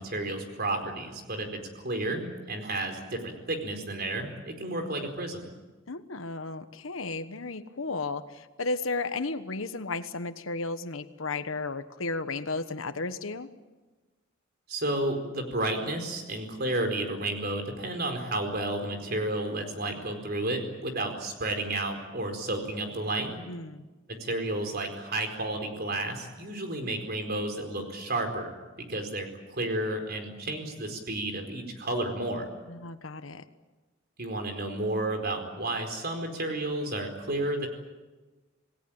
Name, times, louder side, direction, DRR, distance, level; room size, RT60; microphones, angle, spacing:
voice 1, 0.0-5.4 14.7-23.4 24.1-28.5 28.9-32.5 34.2-37.7, right 2 dB, 50° right, 5 dB, 4.5 m, -32 dB
voice 2, 5.9-13.5 23.5-23.8 32.7-33.4, left 3 dB, 85° left, 11 dB, 1.3 m, -34 dB
27.5 x 19.0 x 8.9 m, 1.2 s
head